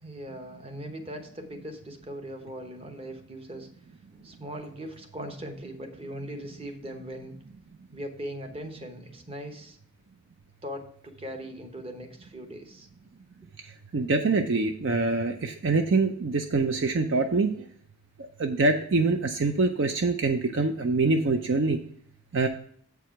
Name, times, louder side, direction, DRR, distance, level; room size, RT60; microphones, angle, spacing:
voice 1, 0.0-3.7 4.1-7.4 7.9-9.8 10.6-12.9, equal, 25° right, 4 dB, 1.0 m, -40 dB
voice 2, 13.6-17.7 18.4-21.8 22.3-22.5, right 3 dB, 55° right, 7 dB, 0.5 m, -25 dB
7.9 x 4.8 x 5.7 m, 0.63 s
head